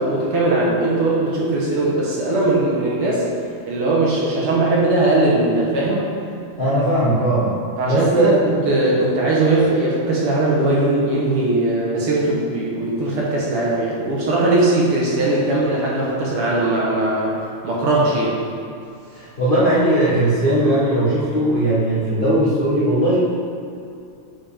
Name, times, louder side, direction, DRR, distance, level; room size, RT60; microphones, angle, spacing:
voice 1, 0.0-3.3 3.7-6.1 7.8-17.3 17.6-18.4, right 2 dB, 55° right, -5 dB, 1.8 m, -19 dB
voice 2, 6.6-7.6 7.8-8.4 19.2-23.2, right 1 dB, 70° left, -10 dB, 0.5 m, -18 dB
9.1 x 5.0 x 3.5 m, 2.6 s
omnidirectional pair, 3.4 m